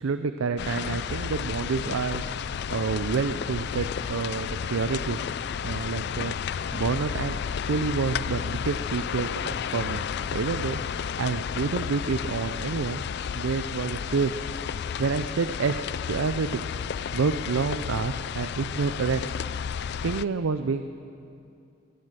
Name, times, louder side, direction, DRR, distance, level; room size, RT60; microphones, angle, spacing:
voice 1, 0.0-5.2 5.6-10.0 10.3-13.0 13.3-14.4 15.0-16.7 17.1-19.2 19.8-20.8, right 4 dB, 85° right, 10 dB, 0.5 m, -28 dB
sound 1, 0.6-20.3, left 7 dB, 55° left, 0.3 m, -32 dB
20.5 x 9.8 x 6.8 m, 2.5 s
head